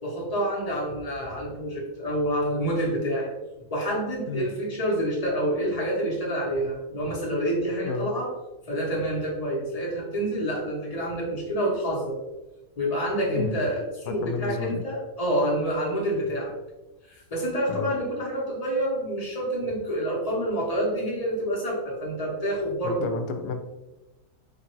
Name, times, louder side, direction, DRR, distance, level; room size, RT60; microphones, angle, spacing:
voice 1, 0.0-3.3 3.7-8.3 8.7-12.2 12.8-16.5 17.1-23.1, right 1 dB, 30° left, -4 dB, 1.0 m, -28 dB
voice 2, 13.3-13.6 14.1-14.9 17.7-17.9 22.8-23.6, left 5 dB, 85° left, 6 dB, 1.1 m, -31 dB
4.8 x 2.5 x 2.9 m, 1.0 s
omnidirectional pair, 1.7 m